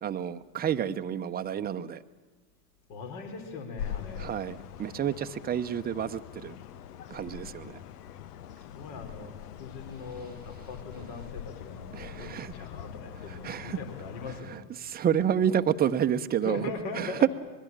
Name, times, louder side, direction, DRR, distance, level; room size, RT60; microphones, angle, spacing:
voice 1, 0.0-2.0 4.2-6.6 7.1-7.8 11.9-12.5 13.4-13.8 14.9-16.6 17.0-17.1, right 9 dB, 20° right, 9 dB, 0.9 m, -29 dB
voice 2, 2.9-4.3 8.5-14.6 16.4-17.2, left 3 dB, 50° left, 6 dB, 4.5 m, -40 dB
sound 1, 3.8-14.4, left 10 dB, 70° left, 1.0 m, -43 dB
24.5 x 22.0 x 8.8 m, 1.3 s
hypercardioid pair, 105°, 48 cm